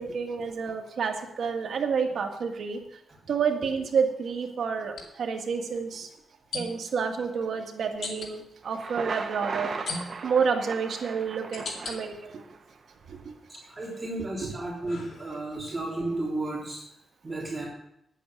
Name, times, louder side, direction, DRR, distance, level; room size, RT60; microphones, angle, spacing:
voice 1, 0.0-2.8 3.3-4.9 5.2-6.1 6.5-9.7 10.2-12.1 14.4-14.6, right 6 dB, 70° right, 3 dB, 1.7 m, -29 dB
sound 1, 2.0-2.2 4.9-5.1 6.5-7.0 8.0-8.3 9.9-10.4 11.0-12.0 12.5-13.2 13.6-15.6, left 3 dB, 65° left, 2.5 m, -39 dB
Thunder, 8.6-12.6, right 4 dB, 50° right, 1.3 m, -37 dB
voice 2, 13.5-16.8 17.2-17.6, right 2 dB, 25° right, -4 dB, 3.5 m, -33 dB
10.0 x 8.5 x 6.4 m, 0.78 s
cardioid pair, 105°, 0 cm